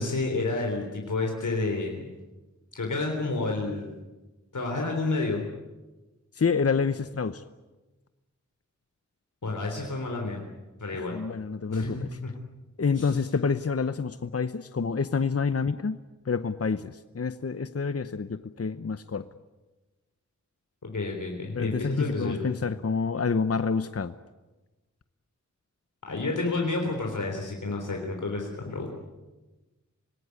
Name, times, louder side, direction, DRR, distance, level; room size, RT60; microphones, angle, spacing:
voice 1, 0.0-2.0 2.7-3.9 4.5-5.4 9.4-10.4 10.8-11.1 11.7-12.3 13.0-13.1 20.8-22.5 26.0-28.9, left 3 dB, 90° left, 2 dB, 3.7 m, -30 dB
voice 2, 6.4-7.4 10.9-12.1 12.8-16.0 16.3-19.3 21.5-24.1, left 5 dB, 55° left, 12 dB, 0.8 m, -28 dB
26.0 x 19.5 x 9.6 m, 1.1 s
wide cardioid pair, 55°, 30 cm